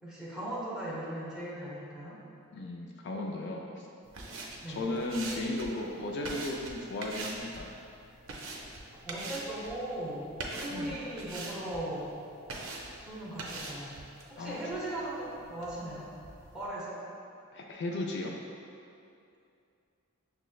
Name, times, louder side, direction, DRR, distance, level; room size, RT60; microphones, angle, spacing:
voice 1, 0.0-2.2 4.6-4.8 9.0-12.1 13.0-14.0 14.3-16.1 16.5-17.0, right 1 dB, 5° right, -9 dB, 0.9 m, -38 dB
voice 2, 2.5-3.9 4.7-7.7 10.7-11.0 14.4-14.6 17.5-18.3, left 2 dB, 55° left, 0 dB, 0.4 m, -35 dB
sound 1, 4.0-16.7, right 2 dB, 65° right, 0.5 m, -44 dB
6.3 x 3.1 x 2.3 m, 2.6 s
head